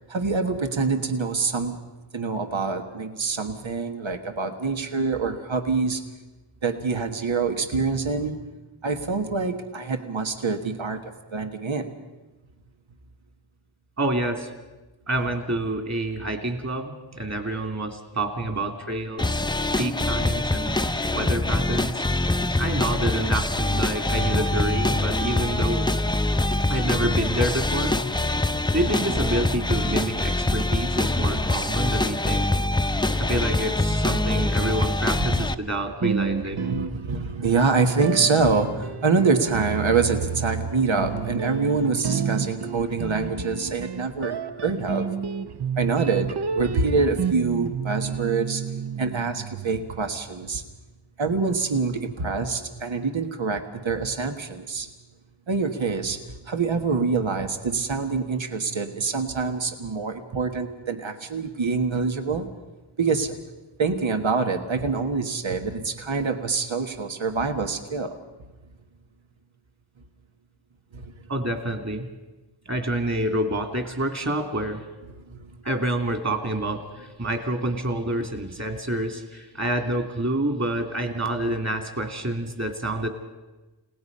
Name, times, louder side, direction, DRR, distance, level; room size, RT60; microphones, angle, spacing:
voice 1, 0.1-6.0 6.6-8.4 8.8-11.9 30.5-30.9 35.3-35.4 36.5-45.1 45.8-48.6 49.0-50.6 51.2-54.9 55.5-62.5 63.0-63.4 63.8-68.1 70.9-71.3 75.1-75.6, right 4 dB, 80° right, 6 dB, 1.6 m, -26 dB
voice 2, 14.0-14.5 15.1-19.4 19.8-20.7 21.1-22.0 22.5-25.9 26.7-28.0 28.7-32.5 33.2-36.8 71.3-72.1 72.6-74.8 75.6-83.1, right 1 dB, 35° right, 5 dB, 3.1 m, -28 dB
sound 1, 19.2-35.5, left 2 dB, 10° left, 0.7 m, -24 dB
sound 2, 36.0-37.5 38.0-50.2, right 6 dB, 60° right, 0.8 m, -30 dB
30.0 x 18.0 x 5.5 m, 1.2 s
wide cardioid pair, 60°, 46 cm